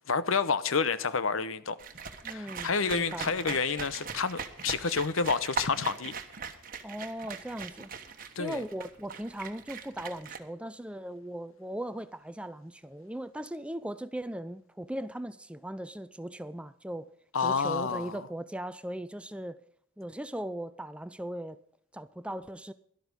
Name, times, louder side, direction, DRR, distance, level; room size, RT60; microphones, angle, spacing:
voice 1, 0.0-1.8 2.3-6.2 8.4-8.6 17.3-18.2, left 5 dB, 75° left, 0.9 m, -29 dB
sound 1, 1.8-10.4, right 5 dB, 40° right, 1.3 m, -40 dB
voice 2, 2.2-3.6 6.8-7.9 8.4-17.1 17.4-19.6 20.0-21.6 21.9-22.7, right 1 dB, 5° right, 0.4 m, -38 dB
12.5 x 12.0 x 5.3 m
head